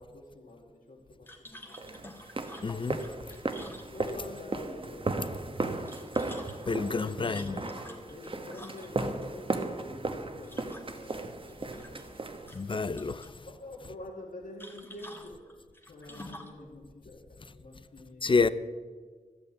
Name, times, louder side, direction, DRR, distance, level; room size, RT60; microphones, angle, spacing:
voice 1, 0.0-2.1 2.7-3.2 3.9-5.2 6.9-12.3 13.5-15.4 15.9-18.3, left 1 dB, 80° left, 2.2 m, -47 dB
sound 1, 1.3-4.4 5.7-9.1 10.4-11.2 11.5-12.2 12.5-13.3 14.6-16.6, left 1 dB, 15° left, 1.6 m, -49 dB
sound 2, 1.8-12.9, right 3 dB, 40° right, 1.2 m, -36 dB
voice 2, 2.6-3.0 6.7-7.6 12.5-13.3 18.2-18.5, left 4 dB, 35° left, 0.6 m, -28 dB
13.0 x 8.9 x 8.4 m
wide cardioid pair, 115°, 14 cm